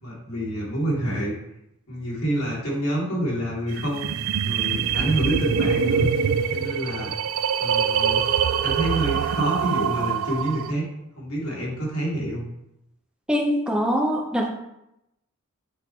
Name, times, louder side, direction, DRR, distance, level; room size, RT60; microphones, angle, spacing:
voice 1, 0.0-1.3 1.9-4.1 4.4-7.1 7.6-8.3 8.6-10.9 11.2-12.5, right 1 dB, 80° left, -5 dB, 2.6 m, -27 dB
sound 1, 3.7-10.7, right 7 dB, 65° right, 0.3 m, -24 dB
voice 2, 13.3-14.5, equal, 5° right, 1 dB, 0.5 m, -23 dB
8.3 x 3.1 x 4.4 m, 0.85 s
head